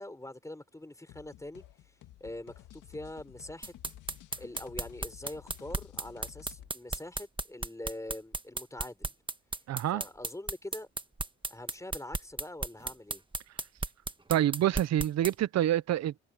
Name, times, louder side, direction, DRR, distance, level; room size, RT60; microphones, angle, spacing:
voice 1, 0.0-1.6 2.2-3.7 4.4-9.1 9.9-10.9 11.5-13.2, left 1 dB, 10° left, 4.6 m, -44 dB
sound 1, 1.1-6.7, left 13 dB, 85° left, 2.0 m, -52 dB
sound 2, 3.6-15.3, right 3 dB, 15° right, 1.6 m, -35 dB
voice 2, 9.7-10.0 14.3-16.2, right 12 dB, 60° right, 0.7 m, -27 dB
cardioid pair, 90°, 30 cm